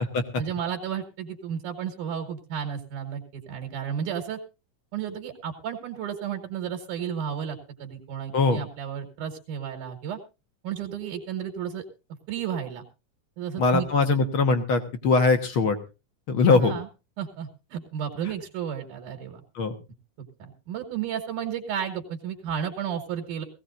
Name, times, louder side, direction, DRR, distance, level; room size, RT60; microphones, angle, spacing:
voice 1, 0.4-4.4 4.9-10.2 10.6-11.8 12.3-12.8 13.4-14.2 16.6-16.9 17.2-19.4 20.4-23.4, right 8 dB, 75° right, 4 dB, 2.9 m, -33 dB
voice 2, 13.6-15.8 16.3-16.8 19.5-19.7, left 4 dB, 55° left, 8 dB, 1.5 m, -21 dB
19.5 x 16.0 x 2.5 m, 0.28 s
omnidirectional pair, 3.7 m